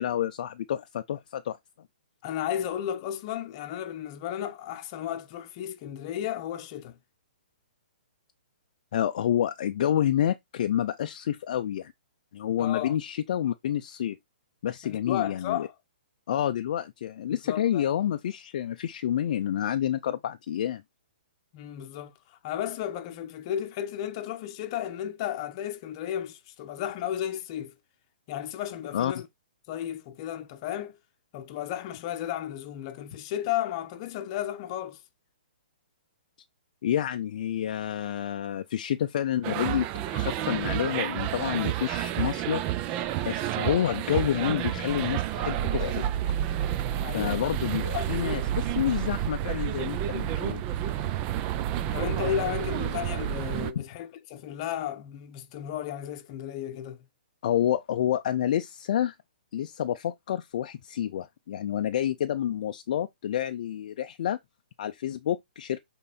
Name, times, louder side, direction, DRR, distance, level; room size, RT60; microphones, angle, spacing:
voice 1, 0.0-1.6 8.9-11.9 12.3-14.2 14.6-15.7 16.3-20.8 28.9-29.1 36.8-39.9 40.1-42.6 42.9-46.1 47.1-50.6 53.7-53.8 57.4-59.1 59.5-64.4 64.8-65.8, left 10 dB, 45° left, 0.5 m, -29 dB
voice 2, 2.2-7.0 12.6-13.0 14.8-15.7 17.4-17.8 21.5-27.7 28.3-29.3 29.7-31.0 31.3-35.0 47.0-47.5 47.9-48.5 51.9-57.0, left 11 dB, 30° left, 0.9 m, -34 dB
sound 1, 39.4-53.7, right 12 dB, 20° right, 0.5 m, -30 dB
7.3 x 3.9 x 4.2 m
hypercardioid pair, 160°, 5 cm